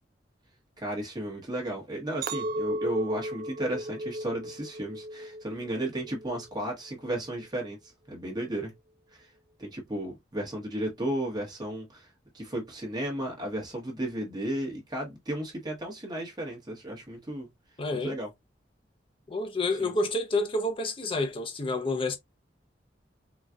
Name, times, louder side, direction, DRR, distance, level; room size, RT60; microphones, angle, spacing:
voice 1, 0.8-7.8 8.1-8.7 9.1-9.3 9.6-17.5 18.0-18.3 19.8-19.9, right 1 dB, 25° right, 1.1 m, -34 dB
Chink clink, 2.2-6.6 7.0-7.5, right 1 dB, 55° right, 0.4 m, -35 dB
voice 2, 17.8-18.2 19.3-22.2, left 2 dB, 30° left, 0.6 m, -29 dB
3.9 x 2.3 x 2.3 m
head